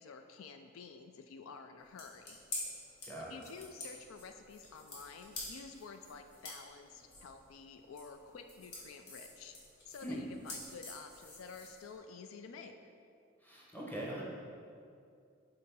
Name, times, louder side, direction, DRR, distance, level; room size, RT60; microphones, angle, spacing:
voice 1, 0.0-2.4 3.3-9.5 9.9-12.9, left 5 dB, 80° left, 6 dB, 0.4 m, -50 dB
sound 1, 1.8-12.0, left 2 dB, 55° left, 1.5 m, -48 dB
voice 2, 13.4-14.2, equal, 10° left, -4 dB, 1.1 m, -41 dB
6.1 x 3.8 x 4.6 m, 2.3 s
head